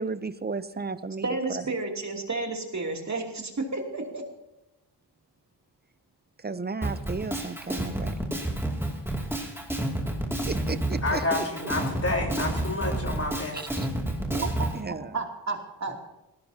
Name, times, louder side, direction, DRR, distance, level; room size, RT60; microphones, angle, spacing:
voice 1, 0.0-1.3 1.5-1.6 6.4-8.2 10.5-11.4 13.5-13.9 14.3-15.2, right 4 dB, 25° right, 14 dB, 0.6 m, -34 dB
voice 2, 1.2-4.2 14.4-15.9, right 3 dB, 40° right, 1 dB, 2.8 m, -32 dB
Drum kit, 6.8-14.7, right 1 dB, 5° right, 2.5 m, -30 dB
voice 3, 11.0-13.6, left 2 dB, 35° left, 0 dB, 4.1 m, -29 dB
20.5 x 17.5 x 2.8 m, 0.96 s
wide cardioid pair, 120°, 43 cm